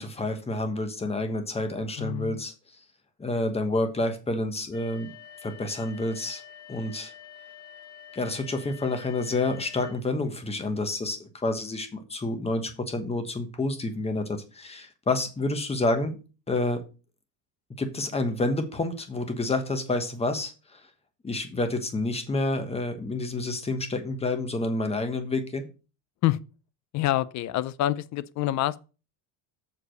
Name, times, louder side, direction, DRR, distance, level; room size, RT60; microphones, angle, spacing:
voice 1, 0.0-2.5 3.2-5.1 5.4-6.4 6.7-7.1 8.1-16.2 16.5-16.8 17.8-20.8 21.2-25.7, left 2 dB, 10° left, 1.2 m, -29 dB
voice 2, 2.0-2.4 26.2-26.4 26.9-28.8, left 14 dB, 40° left, 0.4 m, -26 dB
sound 1, 4.7-9.9, left 9 dB, 75° left, 4.3 m, -47 dB
6.9 x 4.9 x 6.4 m
cardioid pair, 135°, 49 cm